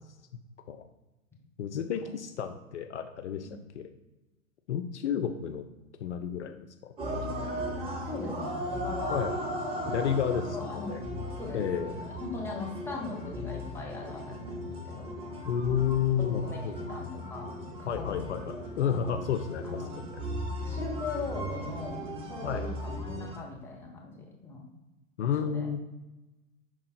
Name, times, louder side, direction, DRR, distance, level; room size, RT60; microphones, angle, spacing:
voice 1, 1.6-3.5 3.8-3.9 4.7-5.6 6.0-7.8 9.1-9.3 9.9-11.0 11.5-11.9 15.5-16.8 17.9-20.1 22.4-22.7 25.2-25.8, left 8 dB, 55° left, 7 dB, 0.6 m, -31 dB
sound 1, 7.0-23.4, equal, 15° right, 0.7 m, -37 dB
voice 2, 8.0-9.2 9.5-10.1 10.5-11.0 11.4-11.6 11.9-15.2 16.2-18.1 19.6-20.0 20.6-24.7 25.2-25.7, left 3 dB, 5° left, -2 dB, 1.1 m, -40 dB
6.0 x 3.6 x 4.3 m, 1.1 s
figure-of-eight pair, 110°, 43 cm